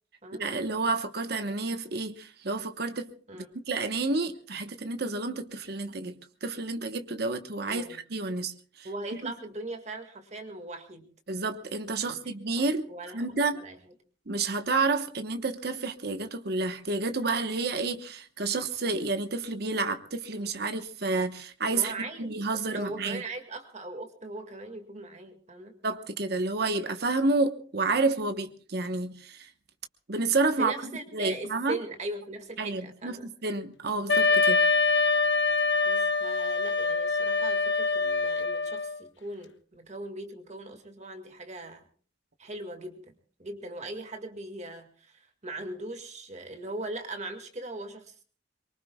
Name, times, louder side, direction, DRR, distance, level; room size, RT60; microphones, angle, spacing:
voice 1, 0.3-8.9 9.2-9.3 11.3-12.9 13.1-13.6 14.3-21.9 22.2-23.2 25.8-29.5 30.1-31.8 32.6-34.7, right 3 dB, 60° right, 1.1 m, -30 dB
voice 2, 7.7-8.0 8.8-11.1 12.0-12.2 12.6-12.7 12.9-13.3 13.5-13.8 21.7-22.4 22.7-25.7 30.6-33.3 35.9-41.9 42.4-43.0 43.4-48.2, right 2 dB, 40° right, 1.9 m, -39 dB
Wind instrument woodwind instrument, 34.1-39.0, left 3 dB, 90° left, 1.2 m, -25 dB
24.0 x 23.0 x 2.3 m
head